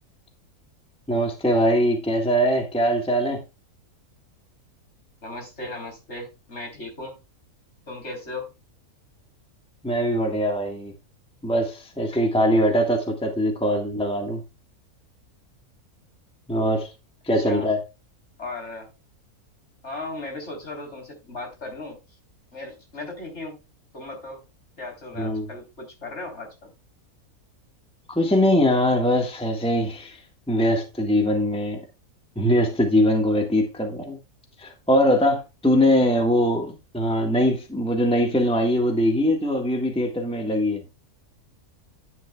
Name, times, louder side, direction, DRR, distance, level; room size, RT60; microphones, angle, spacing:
voice 1, 1.1-3.4 9.8-10.9 11.4-14.4 16.5-16.9 17.2-17.8 25.2-25.5 28.1-30.2 30.5-31.8 32.3-34.2 34.6-40.8, equal, 5° left, 1.4 m, -22 dB
voice 2, 5.2-7.2 7.9-8.5 17.3-17.7 18.4-18.9 19.8-22.0 22.5-23.6 23.9-24.4 24.8-26.7, left 2 dB, 45° left, 4.1 m, -36 dB
11.0 x 9.6 x 2.3 m
omnidirectional pair, 1.6 m